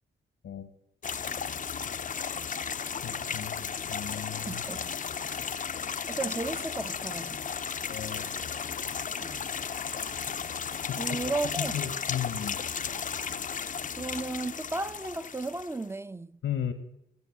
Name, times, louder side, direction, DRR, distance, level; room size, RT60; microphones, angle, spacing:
sound 1, 1.0-15.8, left 6 dB, 40° left, 0.5 m, -34 dB
voice 1, 3.0-4.6 7.9-8.3 10.9-11.1 11.6-12.6 16.4-16.7, left 9 dB, 80° left, 1.1 m, -35 dB
voice 2, 4.5-5.0 6.1-7.4 9.2-9.4 11.0-11.7 14.0-16.4, right 3 dB, 10° right, 0.6 m, -34 dB
18.0 x 6.9 x 8.4 m
cardioid pair, 70°, 21 cm